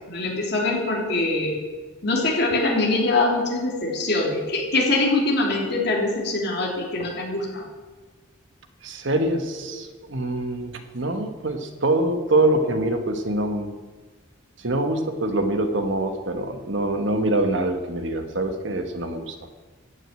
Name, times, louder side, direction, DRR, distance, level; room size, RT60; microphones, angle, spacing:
voice 1, 0.1-1.6 2.0-7.6, left 2 dB, 50° left, -2 dB, 3.4 m, -23 dB
voice 2, 8.8-13.7 14.6-19.4, right 2 dB, 60° right, 7 dB, 1.2 m, -24 dB
14.0 x 6.4 x 9.0 m, 1.3 s
head